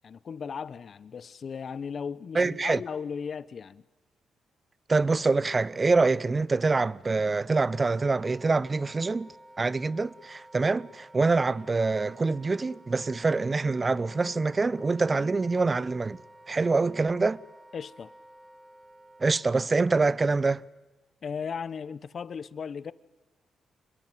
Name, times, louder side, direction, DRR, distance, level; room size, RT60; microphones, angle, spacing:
voice 1, 0.0-3.8 17.7-18.1 21.2-22.9, left 6 dB, 55° left, 1.0 m, -36 dB
voice 2, 2.3-2.8 4.9-9.3 9.6-16.2 16.5-17.4 19.2-20.6, right 3 dB, 30° right, 0.8 m, -25 dB
Wind instrument woodwind instrument, 7.5-19.5, right 1 dB, 15° right, 2.4 m, -52 dB
27.5 x 21.5 x 9.4 m
cardioid pair, 80°, 0 cm